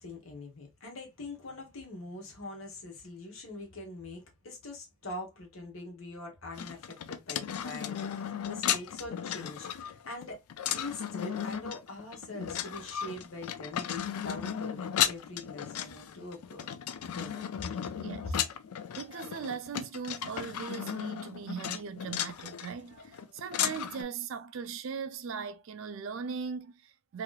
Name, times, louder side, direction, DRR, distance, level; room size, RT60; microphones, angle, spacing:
voice 1, 0.0-10.4 10.7-16.7 17.1-17.4, left 2 dB, 65° left, 1.2 m, -43 dB
sound 1, 6.5-24.0, left 9 dB, 85° left, 0.4 m, -35 dB
voice 2, 18.0-18.4 19.0-27.2, right 6 dB, 65° right, 0.4 m, -39 dB
3.0 x 2.8 x 2.3 m
head